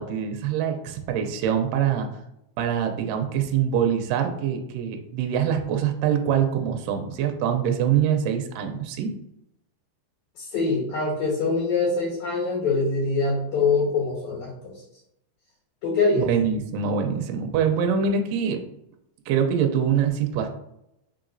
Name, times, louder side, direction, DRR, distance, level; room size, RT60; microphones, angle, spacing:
voice 1, 0.0-2.1 2.6-9.1 16.2-18.6 19.3-20.5, right 8 dB, 80° right, 5 dB, 2.0 m, -24 dB
voice 2, 10.4-14.5 15.8-16.2, left 3 dB, 65° left, -4 dB, 2.3 m, -24 dB
4.7 x 3.9 x 2.5 m, 0.82 s
omnidirectional pair, 4.1 m